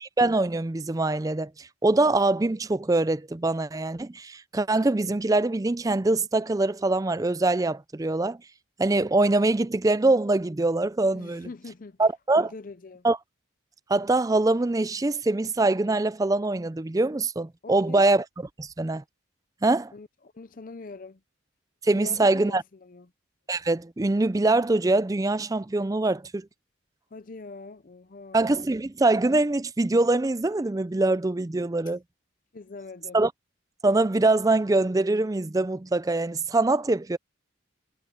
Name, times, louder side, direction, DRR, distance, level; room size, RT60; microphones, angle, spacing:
voice 1, 0.0-8.4 8.8-11.5 12.0-12.5 13.0-13.2 13.9-18.2 18.6-19.0 19.6-19.9 21.8-22.6 23.5-26.5 28.3-32.0 33.1-33.3 33.8-37.2, right 2 dB, 15° right, 0.4 m, -23 dB
voice 2, 11.1-12.0 12.4-13.1 17.6-18.1 19.9-21.2 21.9-23.1 27.1-28.4 32.5-33.2, left 3 dB, 40° left, 0.6 m, -43 dB
head